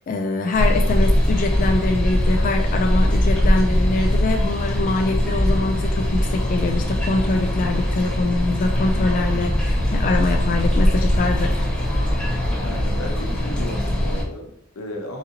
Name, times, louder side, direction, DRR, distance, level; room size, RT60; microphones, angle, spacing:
voice 1, 0.1-11.6, left 3 dB, 40° left, 4 dB, 0.3 m, -24 dB
sound 1, 0.5-14.2, equal, 5° left, 1.0 m, -21 dB
voice 2, 12.6-15.2, left 1 dB, 85° left, 2 dB, 0.9 m, -34 dB
4.0 x 3.8 x 2.8 m, 0.74 s
head